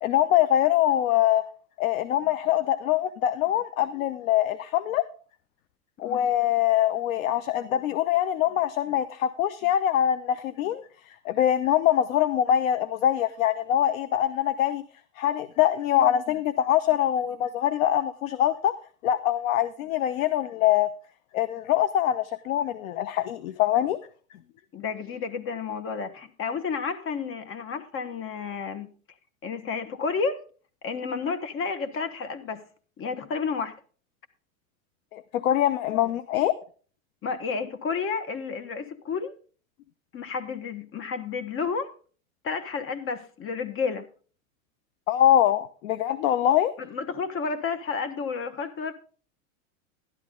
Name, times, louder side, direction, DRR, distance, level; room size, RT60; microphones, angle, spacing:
voice 1, 0.0-1.4 1.8-5.0 6.0-10.8 11.2-14.8 15.2-18.7 19.0-20.9 21.3-24.0 35.1-36.5 45.1-46.7, left 11 dB, 75° left, 0.8 m, -23 dB
voice 2, 24.7-28.9 29.4-30.4 30.8-32.6 33.0-33.7 37.2-39.3 40.1-41.9 42.4-44.1 46.8-48.9, left 5 dB, 30° left, 1.3 m, -31 dB
12.0 x 10.5 x 3.7 m
supercardioid pair, 120°, 41 cm